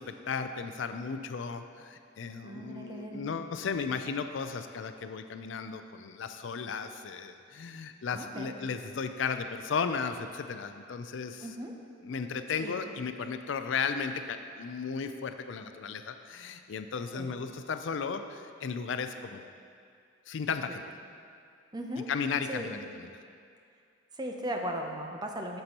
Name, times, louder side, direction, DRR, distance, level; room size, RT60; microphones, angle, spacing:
voice 1, 0.0-11.5 12.0-19.5 20.3-20.8 22.1-23.1, left 5 dB, 65° left, 9 dB, 0.4 m, -35 dB
voice 2, 2.4-3.3 8.1-8.5 11.4-11.7 12.6-12.8 17.1-17.4 20.7-20.8 21.7-22.1 22.5-22.9 24.1-25.6, right 1 dB, 20° right, 2 dB, 0.6 m, -37 dB
9.2 x 6.7 x 3.0 m, 2.3 s
head